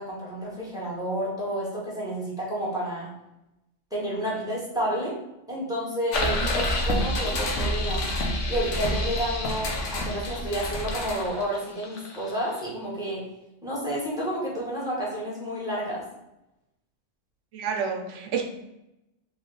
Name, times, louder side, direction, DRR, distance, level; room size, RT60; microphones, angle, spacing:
voice 1, 0.0-3.1 3.9-5.2 5.5-8.0 8.5-13.2 13.6-16.0, right 1 dB, 5° right, -6 dB, 1.1 m, -30 dB
sound 1, 6.1-12.7, left 1 dB, 75° left, 1.0 m, -28 dB
voice 2, 6.3-6.7 17.5-18.4, right 6 dB, 75° right, 3 dB, 1.0 m, -30 dB
3.4 x 2.4 x 3.8 m, 0.89 s
omnidirectional pair, 1.3 m